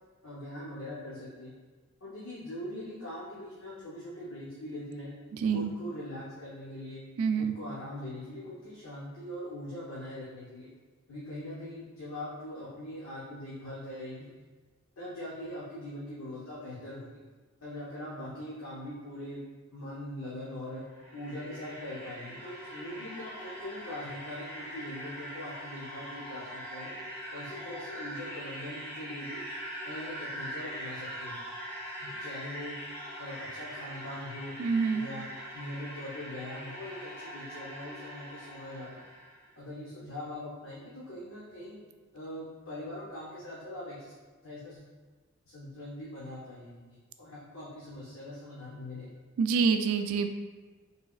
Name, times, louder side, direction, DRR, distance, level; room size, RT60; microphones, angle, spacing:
voice 1, 0.2-1.5 2.0-5.1 5.5-7.0 7.4-10.7 11.1-14.3 15.0-17.1 17.6-19.4 19.7-20.8 21.1-26.9 27.3-29.4 29.8-31.4 32.0-32.8 33.2-34.6 34.9-35.3 35.5-39.1 39.6-41.8 42.1-44.1 44.4-44.9 45.5-49.1, left 1 dB, 70° left, -7 dB, 0.7 m, -42 dB
voice 2, 5.4-5.7 7.2-7.6 34.6-35.1 49.4-50.3, right 5 dB, 80° right, 7 dB, 0.3 m, -26 dB
sound 1, 20.7-39.4, equal, 10° left, 1.1 m, -42 dB
4.7 x 3.2 x 2.3 m, 1.4 s
head